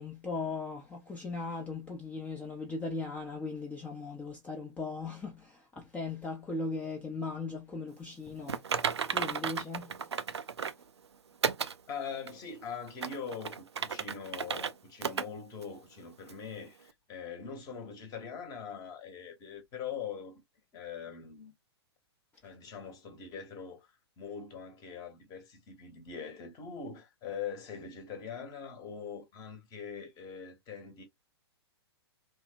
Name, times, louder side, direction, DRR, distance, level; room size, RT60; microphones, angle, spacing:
voice 1, 0.0-10.4, left 3 dB, 10° left, 0.5 m, -38 dB
Typing, 8.5-10.8 11.4-11.8 12.3-12.4 12.9-14.7 15.0-15.3 15.6-15.7 16.3-16.4, right 6 dB, 80° right, 0.4 m, -33 dB
voice 2, 11.9-20.4 20.7-21.5 22.4-31.0, left 6 dB, 25° left, 0.9 m, -42 dB
3.0 x 2.1 x 2.5 m
figure-of-eight pair, 110°, 14 cm